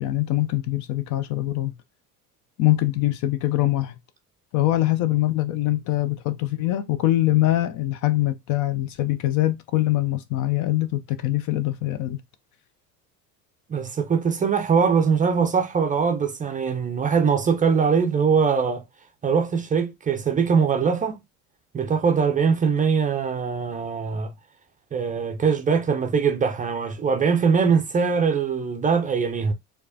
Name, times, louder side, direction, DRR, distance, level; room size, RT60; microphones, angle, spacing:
voice 1, 0.0-1.7 2.6-3.9 4.5-12.2, left 15 dB, 45° left, 0.4 m, -23 dB
voice 2, 13.7-18.8 19.2-21.2 21.7-24.3 24.9-29.5, right 6 dB, 20° right, 0.4 m, -22 dB
4.5 x 2.2 x 2.7 m
hypercardioid pair, 70°, 46 cm